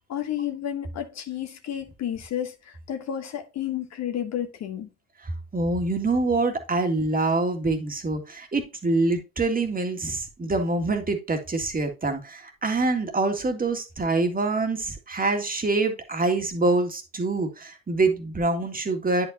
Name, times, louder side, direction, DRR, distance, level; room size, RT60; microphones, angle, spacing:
voice 1, 0.1-4.9, left 10 dB, 45° left, 1.1 m, -31 dB
voice 2, 5.2-19.3, right 3 dB, 25° right, 1.9 m, -25 dB
10.0 x 5.0 x 2.7 m
hypercardioid pair, 55°, 36 cm